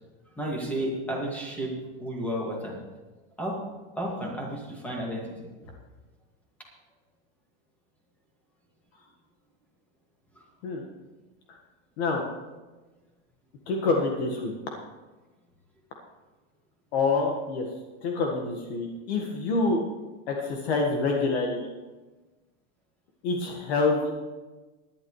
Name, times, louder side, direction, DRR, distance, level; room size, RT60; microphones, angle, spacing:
voice 1, 0.4-1.7 2.0-2.8 3.4-3.6 4.0-5.4, right 1 dB, 5° left, -2 dB, 2.1 m, -32 dB
voice 2, 13.7-14.5 16.9-17.6 18.0-19.8 20.3-21.7 23.2-24.1, left 3 dB, 55° left, 1 dB, 1.7 m, -26 dB
18.5 x 11.0 x 3.2 m, 1.2 s
supercardioid pair, 175°, 37 cm